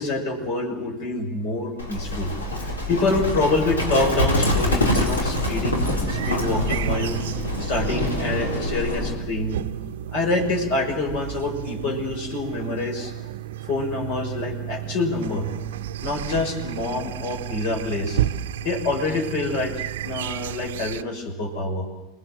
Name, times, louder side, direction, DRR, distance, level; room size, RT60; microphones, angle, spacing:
voice 1, 0.0-2.3 2.6-7.1 7.6-9.6 10.1-13.1 13.6-15.5 16.0-18.2 18.6-19.7 20.0-21.9, left 2 dB, 65° left, 2 dB, 5.9 m, -26 dB
Livestock farm animals working animals, 1.8-9.1, left 1 dB, 85° left, 4.4 m, -25 dB
sound 1, 6.1-21.0, right 11 dB, 70° right, 0.7 m, -32 dB
26.5 x 20.0 x 7.8 m, 1.1 s
hypercardioid pair, 85°, 0 cm